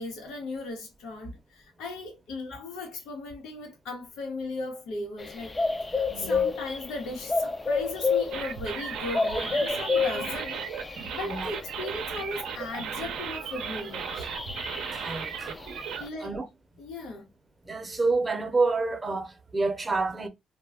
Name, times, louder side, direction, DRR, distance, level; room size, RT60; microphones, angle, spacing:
voice 1, 0.0-5.6 5.9-14.3 16.0-16.4 16.8-17.3, left 3 dB, 90° left, 1.0 m, -37 dB
sound 1, 5.2-13.4 14.0-16.1, left 4 dB, 25° left, 0.4 m, -30 dB
voice 2, 6.1-6.4 11.3-11.5 14.9-15.6 16.2-16.5 17.6-20.3, right 3 dB, 25° right, 0.7 m, -28 dB
sound 2, 8.3-16.0, right 7 dB, 85° right, 0.5 m, -36 dB
2.3 x 2.1 x 3.4 m
cardioid pair, 90°, 0 cm